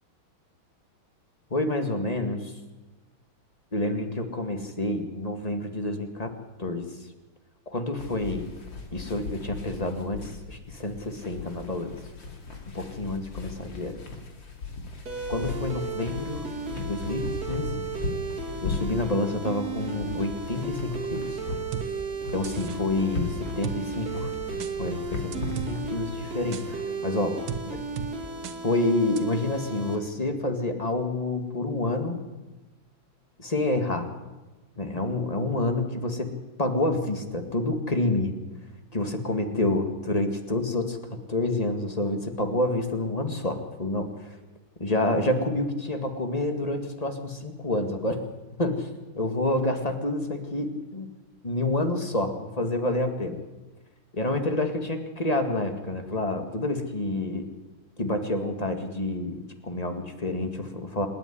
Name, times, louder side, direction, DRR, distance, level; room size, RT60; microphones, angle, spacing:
voice 1, 1.5-2.5 3.7-6.3 6.6-6.9 7.7-8.5 8.9-12.0 12.7-14.0 15.3-16.4 16.8-17.9 18.6-21.4 22.3-24.3 24.8-27.4 27.7-27.8 28.6-32.2 33.4-34.1 34.8-36.3 36.6-38.3 38.9-44.4 44.8-48.2 48.6-48.9 49.2-51.1 51.4-53.4 54.1-57.5 58.0-61.1, left 2 dB, 20° left, 6 dB, 1.9 m, -28 dB
sound 1, 8.0-26.8, left 3 dB, 65° left, 3.3 m, -38 dB
sound 2, 15.1-30.0, right 4 dB, 50° right, 2.9 m, -35 dB
sound 3, 21.7-21.9 22.4-22.8 23.6-23.8 24.6-24.7 25.3-25.7 26.5-26.7 27.5-27.6 28.0-28.1 28.4-28.6 29.2-29.3, right 7 dB, 65° right, 1.8 m, -34 dB
27.0 x 9.9 x 10.0 m, 1.2 s
omnidirectional pair, 2.2 m